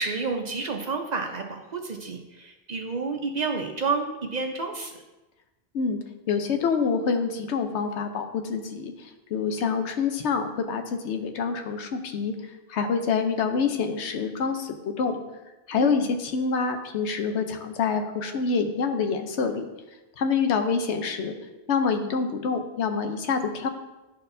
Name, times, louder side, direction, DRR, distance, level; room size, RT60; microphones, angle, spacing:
voice 1, 0.0-4.9 15.7-16.1, right 4 dB, 50° right, 4 dB, 0.6 m, -30 dB
voice 2, 6.3-15.2 15.7-19.7 20.2-21.3 21.7-23.7, left 5 dB, 85° left, 6 dB, 1.0 m, -26 dB
11.0 x 4.3 x 2.6 m, 1.1 s
omnidirectional pair, 1.1 m